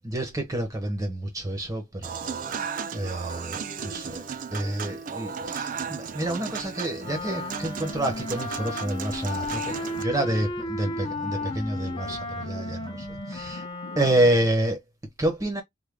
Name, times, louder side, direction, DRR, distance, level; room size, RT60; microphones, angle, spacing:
voice 1, 0.0-2.6 2.9-4.2 4.5-13.7 14.0-14.8 15.2-15.6, right 1 dB, 15° right, 0.8 m, -28 dB
Human voice / Acoustic guitar / Piano, 2.0-10.0, right 6 dB, 40° right, 0.4 m, -35 dB
Wind instrument woodwind instrument, 7.0-14.4, left 2 dB, 25° left, 0.7 m, -34 dB
sound 1, 9.5-14.5, left 3 dB, 70° left, 0.5 m, -44 dB
3.3 x 2.2 x 3.5 m
head